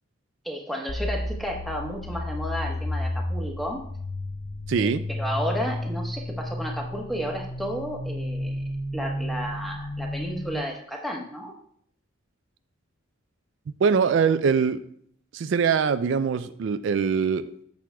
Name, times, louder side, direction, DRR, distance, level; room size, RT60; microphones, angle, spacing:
voice 1, 0.4-3.8 4.8-8.6 8.9-11.5, equal, ahead, -1 dB, 1.1 m, -32 dB
sound 1, 0.9-10.6, left 1 dB, 20° left, 0.5 m, -32 dB
voice 2, 4.7-5.0 13.8-14.8 15.3-17.4, right 6 dB, 65° right, 12 dB, 0.3 m, -22 dB
14.5 x 6.2 x 2.3 m, 0.65 s
head